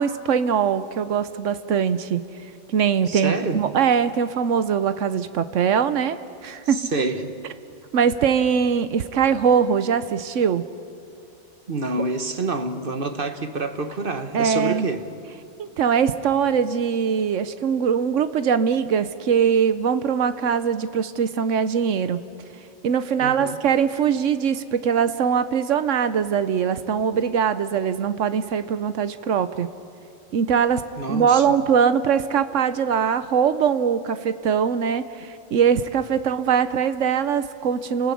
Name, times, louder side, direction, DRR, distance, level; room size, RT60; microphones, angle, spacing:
voice 1, 0.0-2.2 2.7-6.9 7.9-10.6 14.3-14.9 15.6-22.2 22.8-29.7 30.3-38.1, right 7 dB, 85° right, 1.2 m, -22 dB
voice 2, 3.1-3.6 6.7-7.3 11.7-15.1 23.2-23.6 31.0-31.4, right 3 dB, 50° right, 1.4 m, -27 dB
29.0 x 19.5 x 8.5 m
omnidirectional pair, 1.2 m